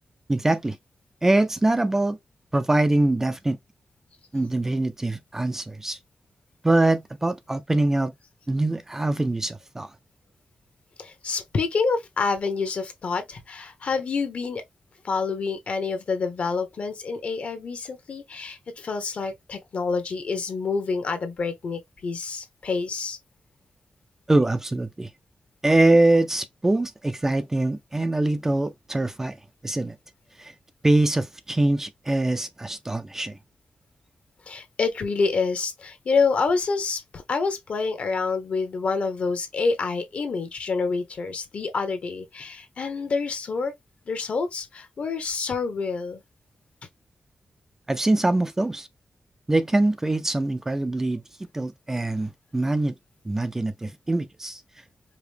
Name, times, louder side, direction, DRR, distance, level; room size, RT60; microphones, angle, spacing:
voice 1, 0.3-0.8 1.2-2.2 2.5-3.6 4.3-6.0 6.6-8.1 8.5-9.9 24.3-25.1 25.6-29.4 29.6-30.0 30.4-30.5 30.8-33.4 47.9-48.9 49.5-51.2 51.5-52.9 53.2-54.6, right 2 dB, 15° right, 0.4 m, -23 dB
voice 2, 11.0-14.6 15.0-23.2 34.5-43.7 44.1-46.2, left 4 dB, 55° left, 1.0 m, -27 dB
4.9 x 2.1 x 3.3 m
wide cardioid pair, 145°, 3 cm